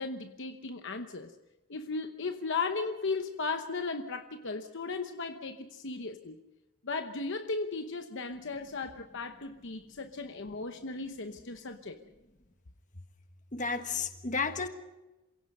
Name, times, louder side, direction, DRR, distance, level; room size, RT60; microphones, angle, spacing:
voice 1, 0.0-1.3 1.7-6.4 6.8-12.0, left 4 dB, 55° left, 6 dB, 1.0 m, -36 dB
voice 2, 13.5-14.7, left 4 dB, 35° left, 7 dB, 1.5 m, -32 dB
28.0 x 17.0 x 5.5 m, 1.0 s
head